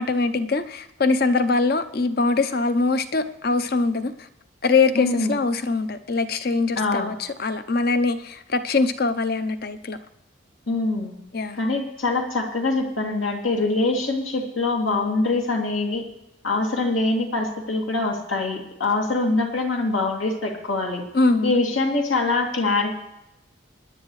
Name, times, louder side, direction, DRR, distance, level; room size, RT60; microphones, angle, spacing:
voice 1, 0.0-4.1 4.6-10.0 11.3-11.6 21.1-21.5, left 3 dB, 50° left, 10 dB, 0.7 m, -22 dB
voice 2, 4.9-5.4 6.8-7.1 10.7-11.2 11.5-16.0 16.4-21.0 21.4-22.9, left 3 dB, 85° left, 1 dB, 2.6 m, -24 dB
25.5 x 10.5 x 3.2 m, 0.89 s
head